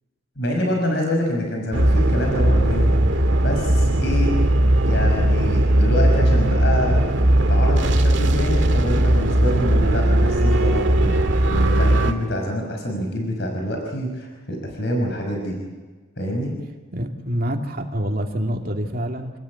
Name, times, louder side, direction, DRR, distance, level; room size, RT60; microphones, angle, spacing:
voice 1, 0.4-2.9 3.4-4.4 4.8-11.2 11.5-15.6 16.2-16.5, equal, 55° left, 1 dB, 5.7 m, -26 dB
sound 1, 1.7-12.1, right 1 dB, 65° right, 2.0 m, -18 dB
voice 2, 16.9-19.3, equal, 45° right, 3 dB, 2.6 m, -26 dB
27.5 x 20.0 x 8.6 m, 1.3 s
head